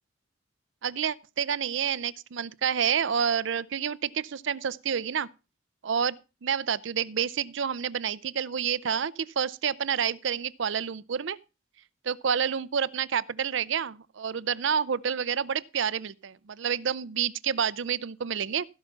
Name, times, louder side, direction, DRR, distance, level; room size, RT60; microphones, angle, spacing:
voice 1, 0.8-5.3 5.8-6.2 6.4-11.4 12.0-18.7, right 7 dB, 70° right, 0.5 m, -29 dB
16.5 x 5.8 x 5.7 m
head